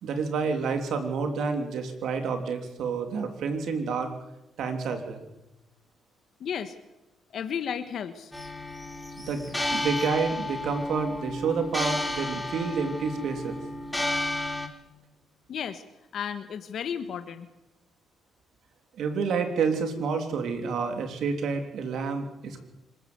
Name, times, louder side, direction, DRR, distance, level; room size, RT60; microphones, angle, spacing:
voice 1, 0.0-4.1 4.6-5.2 9.2-13.6 19.0-22.6, right 5 dB, 70° right, 6 dB, 3.2 m, -29 dB
voice 2, 6.4-6.7 7.3-8.3 15.5-15.8 16.1-17.5, left 8 dB, 60° left, 9 dB, 1.3 m, -33 dB
sound 1, 8.3-14.7, left 1 dB, 10° left, 2.6 m, -32 dB
25.5 x 14.0 x 8.0 m, 1.0 s
cardioid pair, 90°, 0 cm